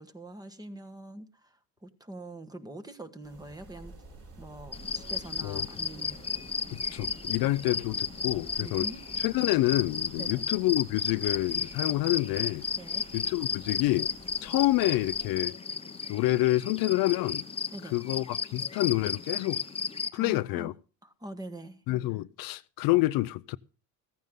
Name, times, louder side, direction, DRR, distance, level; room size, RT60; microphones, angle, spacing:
voice 1, 0.0-1.6 1.8-3.9 4.4-6.2 8.6-9.0 10.2-10.4 12.8-13.1 17.7-17.9 20.1-20.7 21.0-21.8, right 1 dB, 10° right, 1.3 m, -43 dB
sound 1, 3.2-15.4, right 2 dB, 35° right, 5.0 m, -51 dB
sound 2, 4.7-20.1, left 5 dB, 15° left, 0.9 m, -34 dB
voice 2, 6.9-8.9 9.2-12.7 13.1-14.1 14.4-15.6 16.1-17.4 17.9-19.6 20.1-20.7 21.9-23.6, left 18 dB, 60° left, 0.6 m, -27 dB
15.0 x 15.0 x 3.7 m
cardioid pair, 130°, 39 cm